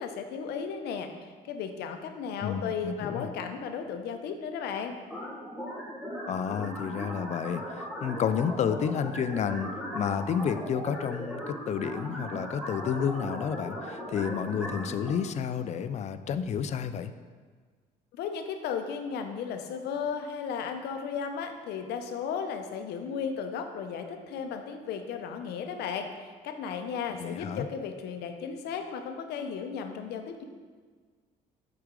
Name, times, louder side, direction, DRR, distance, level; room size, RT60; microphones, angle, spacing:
voice 1, 0.0-4.9 18.2-30.4, left 6 dB, 75° left, 6 dB, 0.6 m, -35 dB
voice 2, 2.4-3.3 6.3-17.1 27.2-27.7, left 7 dB, 40° left, 11 dB, 0.4 m, -31 dB
sound 1, 5.1-15.1, equal, 5° right, 1.5 m, -38 dB
6.2 x 4.9 x 3.7 m, 1.5 s
cardioid pair, 110°, 17 cm